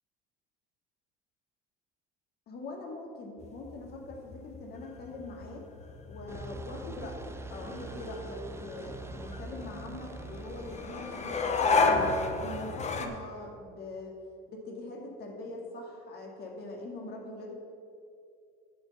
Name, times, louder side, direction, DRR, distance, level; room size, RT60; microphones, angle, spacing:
voice 1, 2.5-5.7 6.1-11.6 11.9-14.2 14.5-17.5, left 2 dB, 50° left, 1 dB, 2.3 m, -42 dB
sound 1, 3.4-13.1, left 3 dB, 35° left, 1.0 m, -33 dB
sound 2, 6.3-14.3, right 3 dB, 15° right, 0.5 m, -45 dB
10.0 x 6.4 x 7.0 m, 2.4 s
supercardioid pair, 105°, 20 cm